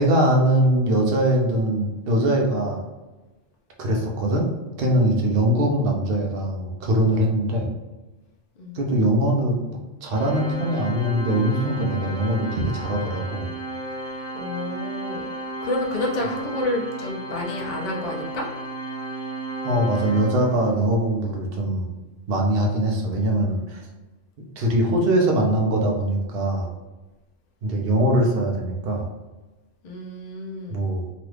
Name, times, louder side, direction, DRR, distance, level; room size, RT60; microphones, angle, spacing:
voice 1, 0.0-2.9 3.8-4.5 4.8-7.7 8.7-9.6 10.0-13.5 19.6-21.9 22.3-23.8 24.6-26.7 27.6-29.1 30.7-31.0, right 1 dB, 60° right, 0 dB, 0.8 m, -22 dB
Organ, 10.1-20.9, right 2 dB, 10° left, 1.0 m, -34 dB
voice 2, 14.3-15.3 15.6-18.5 29.8-30.8, left 1 dB, 50° left, -1 dB, 0.5 m, -29 dB
2.9 x 2.4 x 3.2 m, 1.1 s
omnidirectional pair, 1.2 m